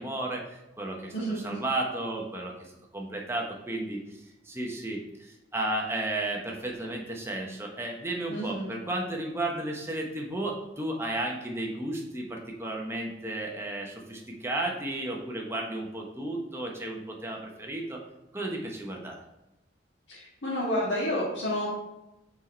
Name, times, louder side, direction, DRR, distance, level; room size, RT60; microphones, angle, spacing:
voice 1, 0.0-4.0 4.4-18.0 18.3-19.2, right 1 dB, 15° right, 0 dB, 1.1 m, -33 dB
voice 2, 1.1-1.5 8.3-8.7 20.1-21.7, equal, 80° left, -7 dB, 1.8 m, -30 dB
6.2 x 4.8 x 4.4 m, 0.92 s
head